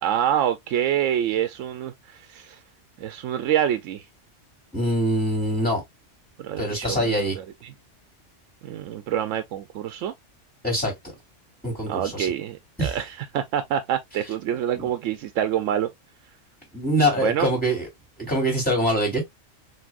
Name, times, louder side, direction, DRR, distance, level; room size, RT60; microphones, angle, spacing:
voice 1, 0.0-2.6 3.0-4.0 6.4-7.7 8.6-10.1 11.9-15.9 17.2-17.5, right 10 dB, 85° right, 0.9 m, -26 dB
voice 2, 4.7-5.8 6.6-7.4 10.6-10.9 11.6-12.3 12.8-12.9 14.8-14.9 16.7-17.9 18.2-19.2, equal, 5° left, 3.1 m, -24 dB
5.9 x 2.9 x 2.4 m
omnidirectional pair, 1.3 m